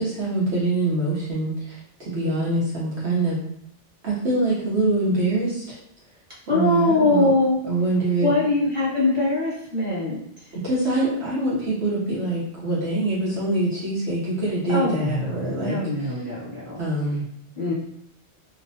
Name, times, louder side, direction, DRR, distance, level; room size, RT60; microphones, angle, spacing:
voice 1, 0.0-3.4 4.0-5.8 6.5-7.3 7.7-8.3 10.5-16.1 16.8-17.2, right 2 dB, 70° right, -8 dB, 1.1 m, -24 dB
voice 2, 2.2-2.6 6.5-7.6 8.2-10.2 14.7-16.8 17.6-17.7, left 2 dB, 25° right, -8 dB, 1.2 m, -22 dB
3.0 x 2.0 x 2.7 m, 0.71 s
omnidirectional pair, 1.2 m